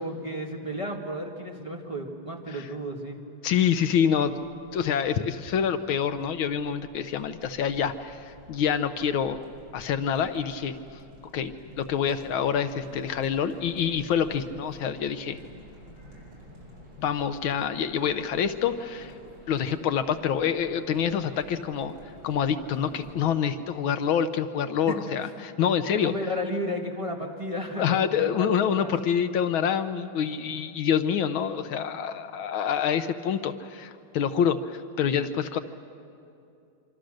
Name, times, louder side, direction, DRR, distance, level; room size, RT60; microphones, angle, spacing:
voice 1, 0.0-3.2 24.9-25.3 25.9-28.9, equal, 15° right, 0 dB, 1.8 m, -33 dB
voice 2, 3.4-4.3 4.7-9.4 9.7-10.7 11.3-15.4 17.0-19.1 19.5-21.9 22.2-26.1 27.8-35.6, left 8 dB, 75° left, 10 dB, 1.6 m, -26 dB
sound 1, 4.1-23.4, equal, 65° right, 7.5 m, -52 dB
sound 2, 7.8-23.1, right 1 dB, 45° right, 7.4 m, -53 dB
26.5 x 25.5 x 6.5 m, 2.5 s
omnidirectional pair, 2.3 m